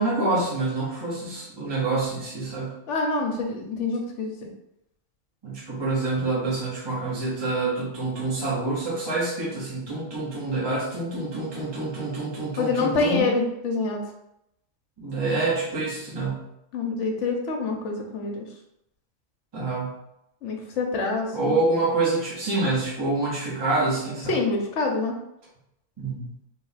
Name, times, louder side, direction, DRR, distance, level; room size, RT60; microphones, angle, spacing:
voice 1, 0.0-2.7 5.4-13.3 15.0-16.5 19.5-20.0 21.3-24.4 26.0-26.4, right 3 dB, 20° right, -6 dB, 1.0 m, -27 dB
voice 2, 2.9-4.4 12.6-14.0 16.7-18.4 20.4-21.6 24.3-25.1, left 3 dB, 65° left, 2 dB, 1.1 m, -26 dB
3.4 x 2.8 x 4.0 m, 0.83 s
omnidirectional pair, 1.4 m